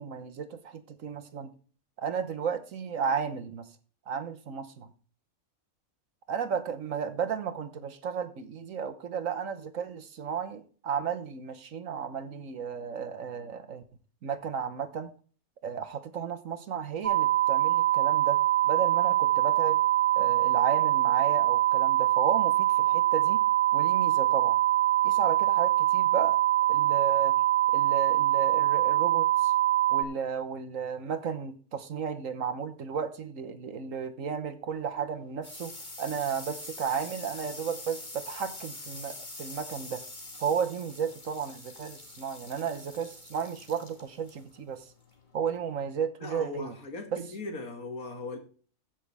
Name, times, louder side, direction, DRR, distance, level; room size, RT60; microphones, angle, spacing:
voice 1, 0.0-1.5 2.0-3.7 4.1-4.9 6.3-13.8 14.2-15.1 15.6-19.8 20.1-23.4 23.7-24.6 25.0-26.4 26.7-27.3 27.7-29.5 29.9-40.0 40.4-44.9 45.3-46.7 47.1-47.2, right 7 dB, 65° right, 1.4 m, -33 dB
sound 1, 17.0-30.0, right 14 dB, 35° right, 0.7 m, -24 dB
sound 2, 34.7-46.0, left 2 dB, 30° left, 2.2 m, -45 dB
voice 2, 46.2-48.4, left 2 dB, 75° left, 2.6 m, -38 dB
15.0 x 6.4 x 3.4 m
omnidirectional pair, 1.5 m